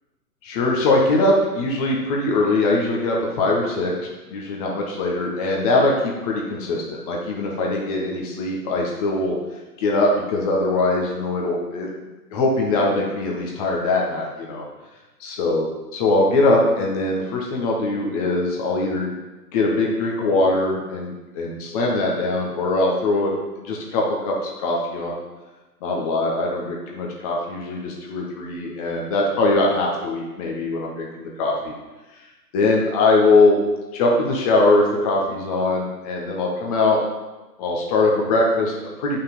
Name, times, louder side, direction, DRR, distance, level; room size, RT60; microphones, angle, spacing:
voice 1, 0.4-9.3 9.8-11.9 12.3-14.6 15.2-15.7 15.9-19.1 19.5-23.3 23.6-25.2 25.8-31.7 32.5-33.6 33.9-37.0 37.6-39.2, left 2 dB, 20° left, -1 dB, 1.3 m, -21 dB
9.4 x 5.8 x 5.4 m, 1.1 s
figure-of-eight pair, 125°, 50 cm